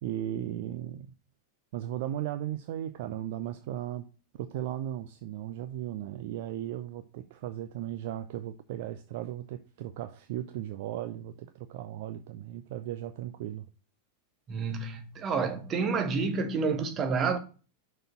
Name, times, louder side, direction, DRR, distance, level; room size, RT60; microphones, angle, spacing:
voice 1, 0.0-1.1 1.7-4.1 4.4-13.6, right 12 dB, 50° right, 0.5 m, -36 dB
voice 2, 14.5-17.4, right 5 dB, 30° right, 1.2 m, -29 dB
6.4 x 4.3 x 5.6 m
figure-of-eight pair, 90°, 0 cm